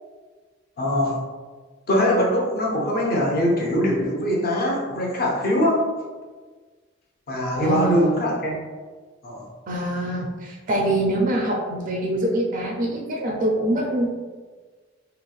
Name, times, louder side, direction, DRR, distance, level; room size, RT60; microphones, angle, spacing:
voice 1, 0.8-1.2 1.9-5.9 7.3-8.7 9.2-9.5, equal, 50° left, -1 dB, 0.6 m, -22 dB
voice 2, 7.6-8.1 9.7-14.1, right 1 dB, 45° right, -1 dB, 0.3 m, -24 dB
3.0 x 2.5 x 2.2 m, 1.4 s
head